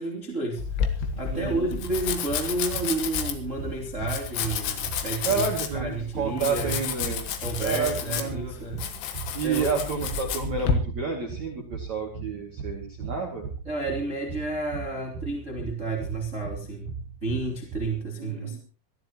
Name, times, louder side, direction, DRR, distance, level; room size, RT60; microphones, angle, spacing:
voice 1, 0.0-6.8 7.4-8.8 9.4-9.7 13.7-16.9 17.2-18.6, right 2 dB, 20° right, 0 dB, 2.4 m, -31 dB
Domestic sounds home sounds, 0.6-10.7, left 8 dB, 90° left, 4.5 m, -31 dB
sound 1, 0.7-18.0, right 5 dB, 65° right, 2.3 m, -38 dB
voice 2, 1.3-1.7 5.2-7.3 7.6-8.5 9.3-13.4 18.2-18.6, right 5 dB, 45° right, 0 dB, 3.0 m, -30 dB
23.0 x 15.5 x 3.0 m, 0.36 s
omnidirectional pair, 5.9 m